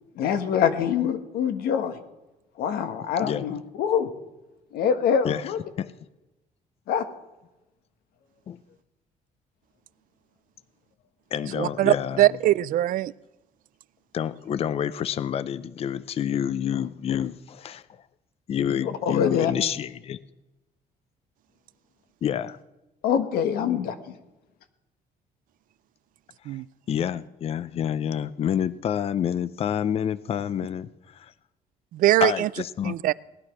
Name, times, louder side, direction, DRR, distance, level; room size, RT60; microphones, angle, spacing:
voice 1, 0.2-2.0 2.6-4.1 4.7-5.6 6.9-7.0 18.7-19.5 23.0-23.9, left 8 dB, 90° left, 9 dB, 1.6 m, -24 dB
voice 2, 3.2-3.6 5.2-5.5 5.8-5.9 8.5-8.6 11.3-12.3 14.1-17.8 18.5-20.2 22.2-22.6 26.5-26.6 26.9-31.3 32.2-32.9, left 9 dB, 40° left, 16 dB, 0.6 m, -28 dB
voice 3, 11.5-13.1 26.5-26.6 31.9-32.5 32.8-33.1, right 14 dB, 65° right, 18 dB, 0.5 m, -22 dB
18.5 x 11.5 x 6.1 m, 1.0 s
cardioid pair, 150°, 15 cm